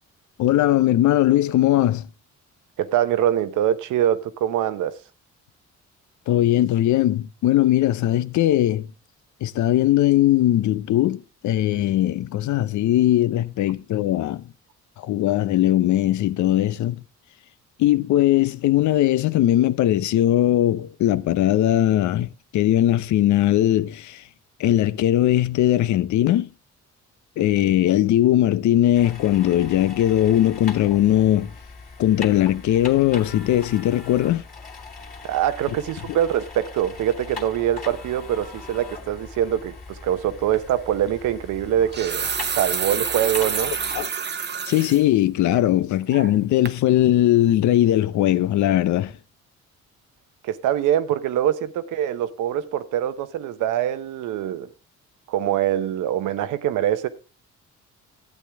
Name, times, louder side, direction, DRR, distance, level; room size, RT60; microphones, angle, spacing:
voice 1, 0.4-2.1 6.3-8.9 9.4-14.5 15.0-17.0 17.8-24.2 24.6-26.5 27.4-31.5 32.0-34.4 36.1-36.2 43.9-44.1 44.7-49.1, left 13 dB, 70° left, 0.6 m, -19 dB
voice 2, 2.8-5.0 35.2-42.3 42.5-43.7 50.4-54.7 55.3-57.1, right 11 dB, 85° right, 0.9 m, -24 dB
sound 1, 28.9-44.0, left 4 dB, 25° left, 2.7 m, -40 dB
sound 2, 40.5-40.7 41.7-45.0 45.5-45.6 46.1-46.4 46.7-46.8, right 6 dB, 35° right, 0.8 m, -28 dB
12.0 x 8.6 x 3.4 m
cardioid pair, 90°, 30 cm